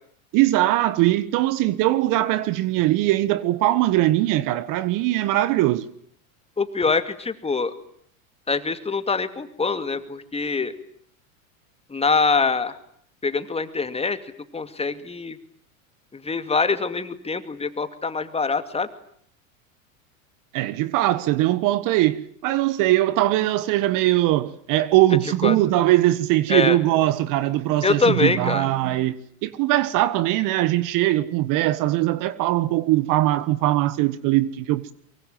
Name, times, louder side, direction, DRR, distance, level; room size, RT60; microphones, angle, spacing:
voice 1, 0.3-5.9 20.5-29.2 29.4-34.9, right 15 dB, 50° right, 1.5 m, -21 dB
voice 2, 6.6-7.7 8.5-10.7 11.9-12.8 13.2-15.4 16.1-18.9 25.4-25.6 26.5-26.8 27.8-28.7, left 4 dB, 15° left, 2.5 m, -24 dB
24.0 x 23.5 x 9.2 m
hypercardioid pair, 100°, 41 cm